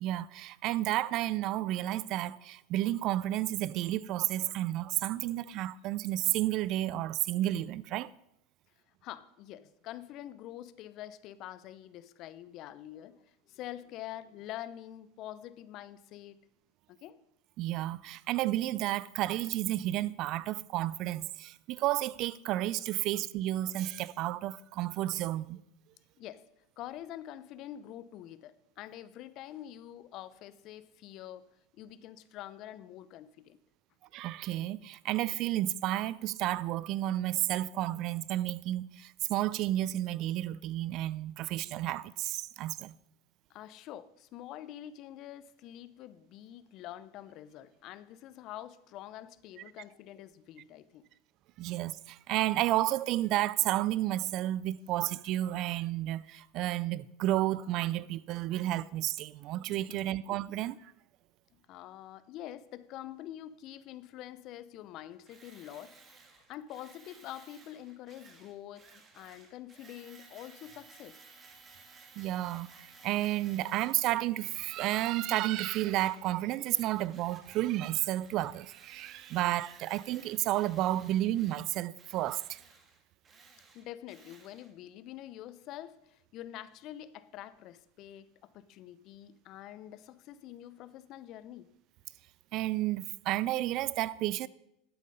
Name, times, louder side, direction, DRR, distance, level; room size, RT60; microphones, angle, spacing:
voice 1, 0.0-8.1 17.6-25.6 34.1-42.9 51.6-60.9 72.2-82.6 92.5-94.5, right 14 dB, 55° right, 0.4 m, -31 dB
voice 2, 9.0-16.4 16.9-17.2 26.2-26.4 26.8-31.4 31.7-33.6 43.5-51.0 60.1-60.2 61.5-66.0 66.5-68.8 69.1-71.2 83.7-91.7, left 12 dB, 50° left, 0.7 m, -46 dB
Tools, 65.3-74.0 74.4-76.3 76.6-84.7, right 4 dB, 30° right, 2.0 m, -57 dB
11.5 x 8.4 x 5.5 m
hypercardioid pair, 90°, 0 cm